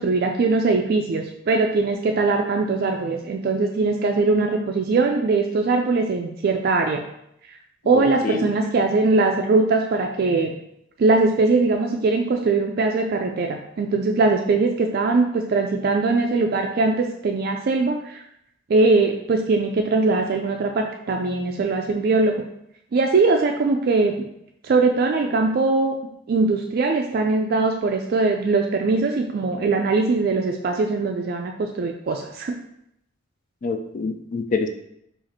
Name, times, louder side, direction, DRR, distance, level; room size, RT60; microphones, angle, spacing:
voice 1, 0.0-7.0 7.9-10.5 11.0-18.2 18.7-22.4 22.9-24.1 24.6-25.9 26.3-32.6, right 3 dB, 50° right, 2 dB, 0.3 m, -21 dB
voice 2, 7.9-8.5 33.6-34.7, left 4 dB, 40° left, 7 dB, 0.3 m, -26 dB
4.9 x 2.5 x 4.2 m, 0.77 s
head